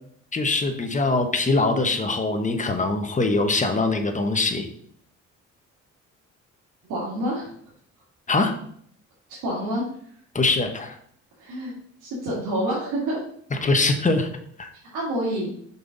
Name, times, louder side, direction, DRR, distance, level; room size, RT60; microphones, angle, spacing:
voice 1, 0.3-4.7 8.3-8.5 10.3-11.0 13.6-14.3 14.6-14.7, left 3 dB, 25° left, 6 dB, 1.1 m, -22 dB
voice 2, 6.9-7.5 9.4-9.8 11.4-11.7 12.0-13.2 14.9-15.5, right 1 dB, 90° right, -6 dB, 2.1 m, -27 dB
5.6 x 5.6 x 3.9 m, 0.65 s
cardioid pair, 90°, 30 cm